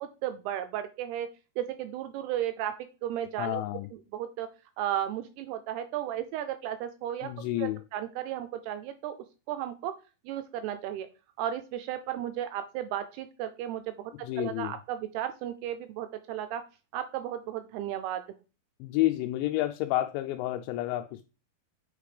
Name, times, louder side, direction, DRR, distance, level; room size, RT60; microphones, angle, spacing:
voice 1, 0.0-1.3 1.6-2.7 3.0-3.6 4.1-4.5 4.8-7.3 7.6-9.1 9.5-9.9 10.3-11.1 11.4-14.1 14.4-16.6 16.9-18.2, right 11 dB, 85° right, 9 dB, 2.3 m, -34 dB
voice 2, 3.4-3.9 7.2-7.8 14.2-14.8 18.8-21.3, left 15 dB, 85° left, 7 dB, 2.8 m, -30 dB
8.9 x 3.4 x 5.0 m, 0.33 s
omnidirectional pair, 5.1 m